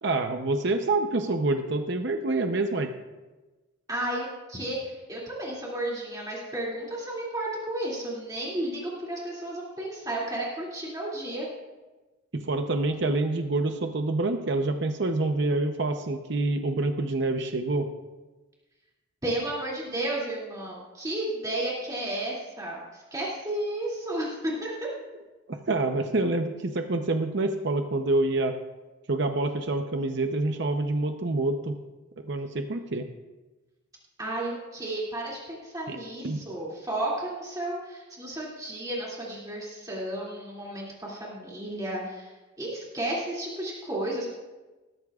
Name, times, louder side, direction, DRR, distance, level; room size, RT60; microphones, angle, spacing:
voice 1, 0.0-2.9 12.3-17.9 25.5-28.5 29.1-31.7 32.3-33.0 35.9-36.0 36.2-36.4, right 2 dB, 55° right, 5 dB, 0.7 m, -27 dB
voice 2, 3.9-11.5 19.2-24.9 34.2-42.3 42.6-44.3, right 1 dB, 15° right, -5 dB, 2.5 m, -33 dB
19.5 x 13.0 x 2.4 m, 1.2 s
head